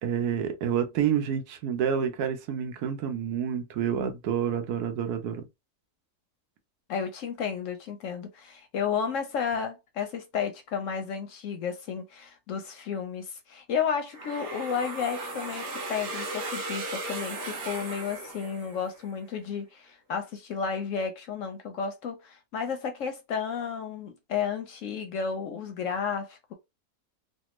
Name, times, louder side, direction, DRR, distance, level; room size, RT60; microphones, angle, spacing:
voice 1, 0.0-5.4, right 8 dB, 80° right, 1.2 m, -28 dB
voice 2, 6.9-26.5, left 6 dB, 65° left, 0.8 m, -32 dB
sound 1, 14.1-19.0, right 2 dB, 55° right, 1.0 m, -36 dB
3.3 x 2.2 x 3.0 m
omnidirectional pair, 1.6 m